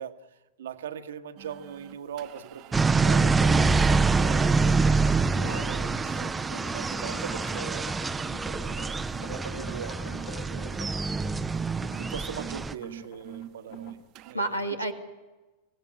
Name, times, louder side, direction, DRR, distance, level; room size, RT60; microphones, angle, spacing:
voice 1, 0.0-5.0 5.4-8.1 8.4-10.9 11.7-14.0 14.2-14.7, right 8 dB, 60° right, 9 dB, 1.3 m, -41 dB
sound 1, 1.4-14.3, right 13 dB, 40° right, 1.1 m, -47 dB
sound 2, 2.7-12.7, right 4 dB, 10° right, 0.7 m, -25 dB
sound 3, 4.4-14.0, left 7 dB, 55° left, 2.2 m, -47 dB
voice 2, 5.3-6.3 14.3-14.9, right 1 dB, 90° left, 5 dB, 2.1 m, -33 dB
25.0 x 17.0 x 9.7 m, 1.2 s
figure-of-eight pair, 90°, 0 cm